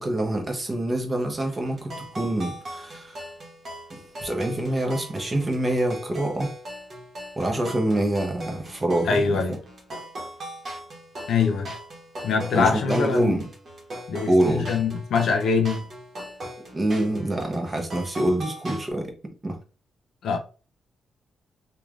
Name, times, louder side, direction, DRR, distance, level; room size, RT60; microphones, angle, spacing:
voice 1, 0.0-3.2 3.9-6.5 7.4-9.6 12.5-13.5 14.3-14.7 16.7-19.1 19.4-19.6, right 1 dB, 25° right, 0.8 m, -26 dB
sound 1, 1.3-18.9, right 1 dB, 50° right, 1.0 m, -39 dB
voice 2, 9.1-9.6 11.3-11.7 12.2-13.4 14.1-15.8 20.2-20.4, left 5 dB, 75° left, 0.5 m, -23 dB
3.1 x 2.3 x 2.4 m
cardioid pair, 95°, 0 cm